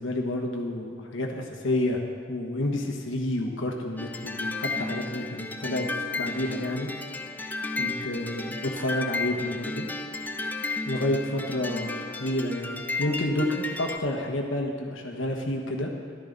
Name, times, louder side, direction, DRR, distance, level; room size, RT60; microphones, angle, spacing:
voice 1, 0.0-2.0 2.3-5.9 6.2-6.9 7.8-9.9 10.8-15.9, left 1 dB, 65° left, 1 dB, 1.2 m, -29 dB
sound 1, 4.0-14.0, left 3 dB, 10° left, 0.3 m, -33 dB
13.5 x 11.5 x 4.0 m, 2.2 s
head